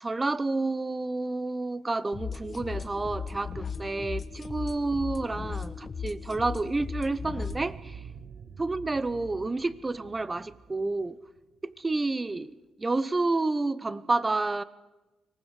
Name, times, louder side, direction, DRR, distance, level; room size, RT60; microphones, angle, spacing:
voice 1, 0.0-8.0 8.6-11.2 11.6-12.5 12.8-14.6, right 3 dB, 20° right, 0.8 m, -30 dB
sound 1, 2.1-7.6, left 5 dB, 40° left, 1.1 m, -37 dB
sound 2, 7.2-12.0, right 6 dB, 55° right, 1.0 m, -46 dB
24.5 x 18.5 x 6.5 m
cardioid pair, 90°, 0 cm